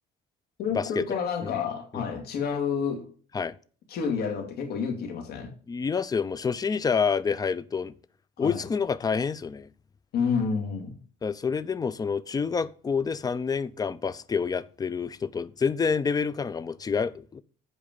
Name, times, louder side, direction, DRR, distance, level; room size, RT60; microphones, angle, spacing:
voice 1, 0.6-3.1 3.9-5.5 8.4-8.6 10.1-10.9, left 6 dB, 70° left, 2.5 m, -29 dB
voice 2, 5.7-7.9 8.4-9.7 11.2-17.4, left 5 dB, 20° left, 0.6 m, -28 dB
8.4 x 4.9 x 7.4 m
cardioid pair, 110°, 17 cm